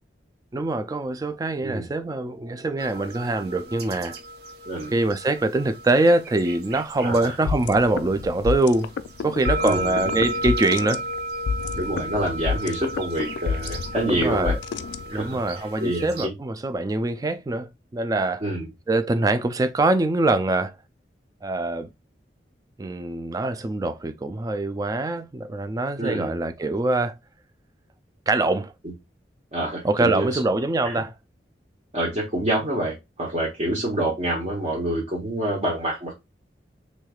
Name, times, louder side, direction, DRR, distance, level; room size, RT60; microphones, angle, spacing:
voice 1, 0.5-4.2 4.9-8.9 9.2-11.0 14.1-14.6 15.1-18.4 18.9-20.7 21.4-21.9 22.8-27.1 28.3-28.7 29.8-31.1, right 2 dB, 20° right, 0.3 m, -24 dB
sound 1, 2.8-16.3, right 2 dB, 65° right, 0.6 m, -35 dB
voice 2, 7.0-7.3 9.6-10.2 11.8-14.5 15.1-16.3 18.4-18.7 26.0-26.4 28.8-28.9 29.5-30.4 30.8-31.0 31.9-36.1, right 1 dB, 40° right, 0.9 m, -27 dB
sound 2, 7.5-15.4, left 5 dB, 80° left, 0.3 m, -30 dB
3.2 x 3.1 x 2.3 m
head